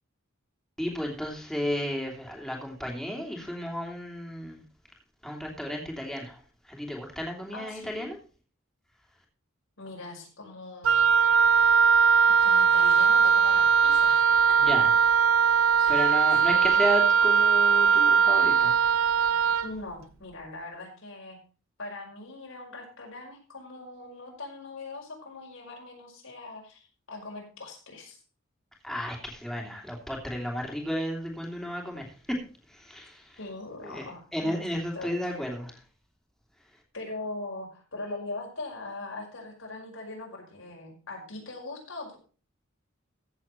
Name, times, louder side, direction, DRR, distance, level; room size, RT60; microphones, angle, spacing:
voice 1, 0.8-4.6 5.2-6.4 6.7-8.2 14.6-14.9 15.9-18.7 28.8-32.4 32.7-33.4 33.8-34.1 34.3-35.7, equal, ahead, -1 dB, 2.8 m, -33 dB
voice 2, 7.5-8.0 9.8-11.0 12.4-14.7 15.8-16.8 19.6-21.4 21.8-28.2 33.4-34.6 34.9-35.4 36.9-42.2, left 2 dB, 75° left, 0 dB, 5.4 m, -41 dB
Wind instrument woodwind instrument, 10.8-19.7, right 6 dB, 85° right, 0.8 m, -20 dB
15.0 x 7.5 x 4.4 m, 0.37 s
head